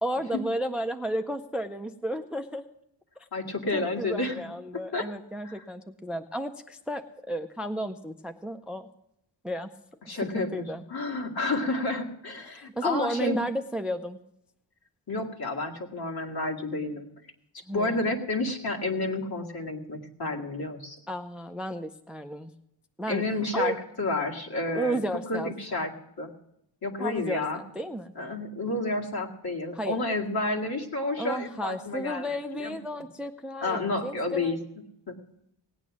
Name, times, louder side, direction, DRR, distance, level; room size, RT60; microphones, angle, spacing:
voice 1, 0.0-2.6 3.7-8.9 9.4-9.7 10.0-10.8 12.4-14.2 17.7-18.0 21.1-22.5 23.0-23.2 23.5-23.8 24.7-25.5 27.0-28.2 29.7-30.0 31.2-34.6, right 1 dB, ahead, 9 dB, 0.5 m, -33 dB
voice 2, 3.3-4.4 4.9-5.1 5.4-5.6 10.1-13.4 15.1-17.1 17.7-21.0 23.1-25.0 25.3-25.9 26.2-26.3 26.8-27.6 28.2-32.3 32.5-32.8 33.6-34.6 35.1-35.2, left 2 dB, 55° left, 0 dB, 2.2 m, -30 dB
18.0 x 9.0 x 6.1 m, 0.79 s
wide cardioid pair, 110°, 45 cm